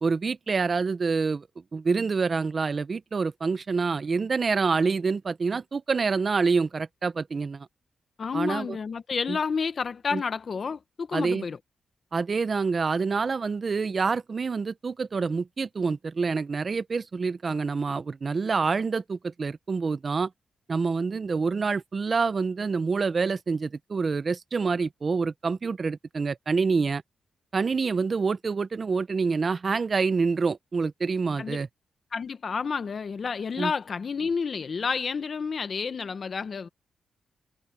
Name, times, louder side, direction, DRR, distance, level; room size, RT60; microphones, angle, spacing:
voice 1, 0.0-1.5 1.7-7.7 8.3-8.8 9.3-9.4 10.1-10.2 11.1-11.4 12.1-20.3 20.7-27.0 27.5-31.7 33.6-33.7, right 4 dB, 40° right, 0.8 m, -27 dB
voice 2, 8.2-11.6 31.4-31.6 32.1-36.7, left 5 dB, 50° left, 1.1 m, -30 dB
wide cardioid pair, 115°, 0 cm